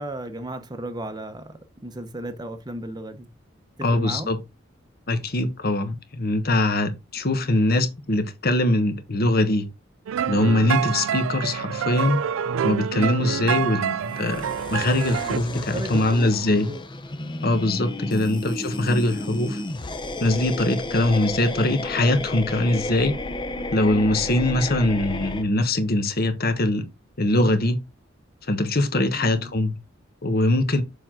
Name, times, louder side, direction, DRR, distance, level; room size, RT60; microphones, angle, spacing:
voice 1, 0.0-3.3 3.8-4.3 15.1-16.8 29.1-29.6, right 1 dB, 20° right, 0.8 m, -35 dB
voice 2, 3.8-4.4 5.1-9.7 10.3-12.2 12.6-14.4 14.7-16.7 17.4-19.6 20.2-23.1 23.7-26.8 27.2-27.8 28.5-29.8 30.2-30.8, left 1 dB, 50° left, 1.2 m, -22 dB
sound 1, 10.1-15.4, right 8 dB, 85° right, 0.3 m, -27 dB
sound 2, 14.0-25.4, left 2 dB, 25° left, 0.7 m, -32 dB
6.9 x 4.5 x 3.8 m
head